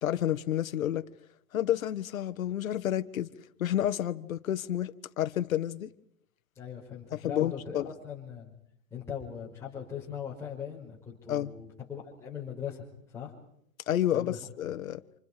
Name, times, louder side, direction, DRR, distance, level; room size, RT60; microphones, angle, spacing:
voice 1, 0.0-1.0 1.5-3.3 3.6-5.9 7.1-7.9 11.3-11.5 13.9-15.0, left 11 dB, 80° left, 1.6 m, -30 dB
voice 2, 6.6-8.6 8.9-13.3 14.1-14.4, left 8 dB, 5° left, 5.2 m, -40 dB
29.5 x 27.5 x 5.1 m
hypercardioid pair, 160°, 40 cm